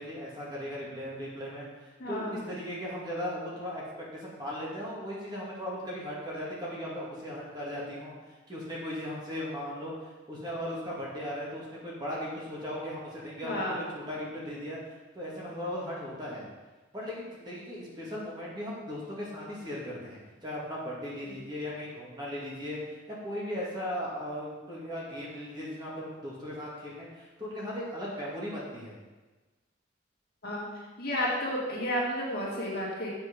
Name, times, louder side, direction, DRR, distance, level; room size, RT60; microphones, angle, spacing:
voice 1, 0.0-1.7 2.1-8.1 8.5-9.9 10.3-14.8 15.1-16.5 16.9-22.8 23.2-29.0, equal, 20° right, -6 dB, 2.1 m, -37 dB
voice 2, 2.0-2.4 13.4-13.8 21.2-21.4 30.4-30.7 31.0-33.1, equal, 50° left, -5 dB, 2.3 m, -32 dB
7.9 x 6.7 x 5.2 m, 1.2 s
head